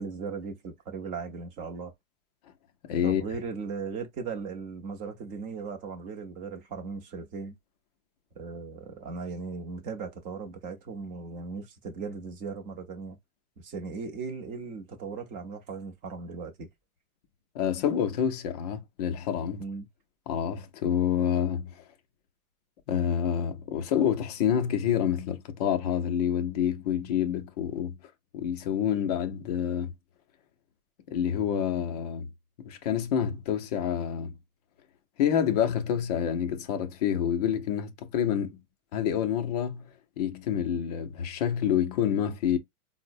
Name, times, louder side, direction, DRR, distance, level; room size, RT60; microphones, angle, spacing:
voice 1, 0.0-1.9 3.0-7.6 8.4-13.2 13.6-16.7 19.6-19.9, right 4 dB, 20° right, 0.5 m, -37 dB
voice 2, 2.8-3.2 17.5-19.6 20.3-21.8 22.9-28.0 28.3-29.9 31.1-32.3 32.6-34.3 35.2-38.6 38.9-39.9 40.2-42.6, left 9 dB, 30° left, 0.4 m, -28 dB
4.2 x 2.1 x 2.5 m
hypercardioid pair, 150°, 44 cm